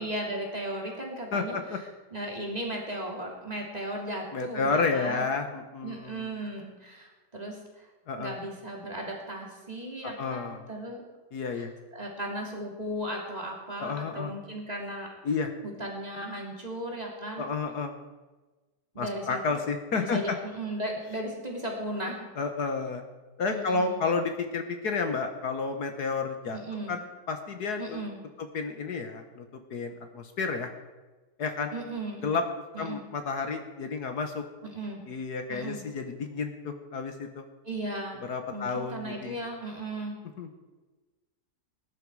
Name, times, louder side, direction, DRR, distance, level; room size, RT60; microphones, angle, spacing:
voice 1, 0.0-1.6 2.1-5.3 5.8-7.9 8.2-11.0 11.5-11.7 11.9-15.2 15.8-17.5 18.9-19.6 20.0-22.3 23.5-24.1 26.5-27.0 27.8-28.2 31.7-32.3 32.7-33.0 34.6-35.0 35.5-35.8 37.6-38.2 38.5-40.1, right 1 dB, 20° right, -1 dB, 3.0 m, -36 dB
voice 2, 1.3-1.8 4.3-6.3 8.1-8.4 10.0-10.6 11.3-11.7 13.8-14.3 15.2-15.5 17.4-17.9 19.0-20.4 22.4-23.0 23.4-26.6 26.9-27.0 27.3-28.0 28.5-29.4 29.7-30.7 31.4-31.7 32.2-32.4 32.8-34.4 35.1-37.4 38.2-39.3 40.4-40.5, left 4 dB, 65° left, 6 dB, 1.7 m, -31 dB
20.0 x 11.0 x 4.8 m, 1.2 s
omnidirectional pair, 1.9 m